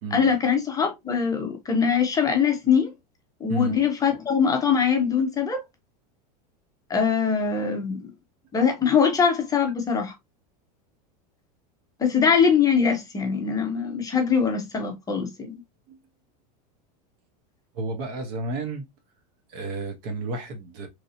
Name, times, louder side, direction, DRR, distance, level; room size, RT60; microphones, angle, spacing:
voice 1, 0.1-2.9 3.4-5.6 6.9-8.1 8.5-10.1 12.0-15.6, left 6 dB, 15° left, 0.7 m, -22 dB
voice 2, 3.5-3.8 15.9-16.0 17.7-18.8 19.5-20.9, right 2 dB, 55° right, 0.9 m, -31 dB
3.1 x 2.6 x 2.6 m
supercardioid pair, 140°, 21 cm